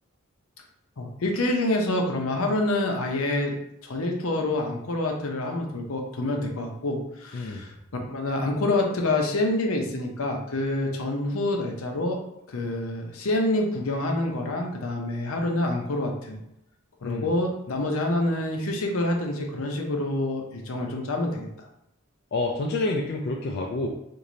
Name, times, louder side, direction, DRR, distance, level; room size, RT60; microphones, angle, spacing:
voice 1, 1.0-3.5 3.8-7.7 8.1-12.2 12.5-16.4 17.0-21.5, left 2 dB, 75° left, 2 dB, 0.7 m, -27 dB
voice 2, 7.3-7.6 17.0-17.3 22.3-23.9, left 2 dB, 50° left, 0 dB, 0.3 m, -28 dB
3.1 x 2.6 x 3.8 m, 0.82 s
head